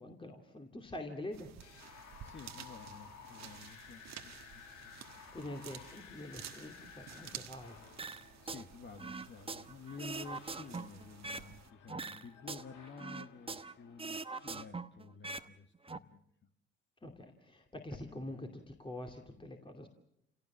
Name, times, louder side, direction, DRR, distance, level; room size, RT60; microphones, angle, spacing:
voice 1, 0.0-1.5 5.3-7.8 17.0-19.9, left 1 dB, 15° left, 3 dB, 2.6 m, -45 dB
sound 1, 1.3-11.7, right 10 dB, 60° right, 1.5 m, -52 dB
sound 2, 1.6-14.5, left 8 dB, 70° left, 1.8 m, -56 dB
voice 2, 1.9-4.9 8.4-16.5 18.1-18.5, left 5 dB, 35° left, 7 dB, 1.6 m, -52 dB
sound 3, 8.0-8.6 9.0-11.5 11.9-13.7 14.0-15.5 15.7-16.0, right 3 dB, 15° right, 1.1 m, -42 dB
28.5 x 17.5 x 7.4 m, 0.77 s
hypercardioid pair, 55°, 31 cm